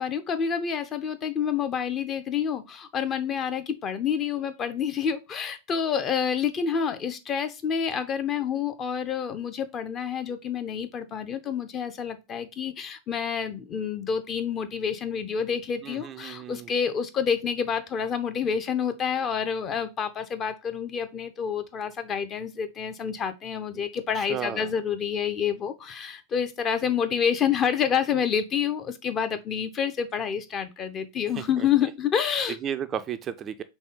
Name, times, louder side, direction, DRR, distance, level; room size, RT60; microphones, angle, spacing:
voice 1, 0.0-32.6, left 7 dB, 30° left, 0.6 m, -28 dB
voice 2, 15.8-16.7 23.7-23.8 24.1-24.7 31.4-31.9 32.5-33.6, right 9 dB, 25° right, 0.4 m, -34 dB
4.2 x 3.4 x 3.7 m
figure-of-eight pair, 90°, 0 cm